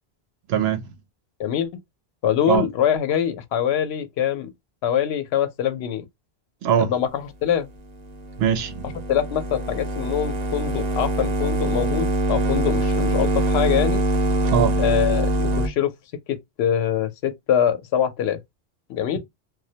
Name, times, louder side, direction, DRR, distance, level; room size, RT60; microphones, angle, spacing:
voice 1, 0.5-0.9 2.5-2.7 6.6-6.9 8.4-8.9 14.5-14.8, right 8 dB, 80° right, 0.8 m, -21 dB
voice 2, 2.2-4.5 4.8-6.0 6.8-7.7 9.1-14.0 14.8-15.9 16.3-18.4 18.9-19.2, left 9 dB, 85° left, 0.8 m, -24 dB
sound 1, 8.0-15.7, right 1 dB, 55° right, 0.5 m, -23 dB
2.2 x 2.1 x 2.7 m
omnidirectional pair, 1.0 m